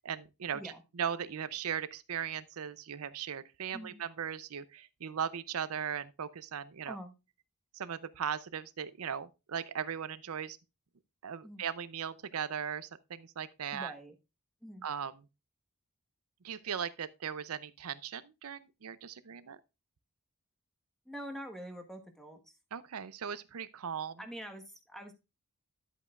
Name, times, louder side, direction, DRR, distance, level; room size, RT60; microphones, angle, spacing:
voice 1, 0.0-0.6 1.0-7.0 7.7-10.6 11.2-13.9 14.8-15.1 16.4-19.6 22.7-24.2, right 8 dB, 75° right, 0.6 m, -38 dB
voice 2, 13.7-14.1 14.6-14.8 21.0-22.4 24.2-25.1, equal, ahead, 1.3 m, -45 dB
11.0 x 8.2 x 2.4 m
head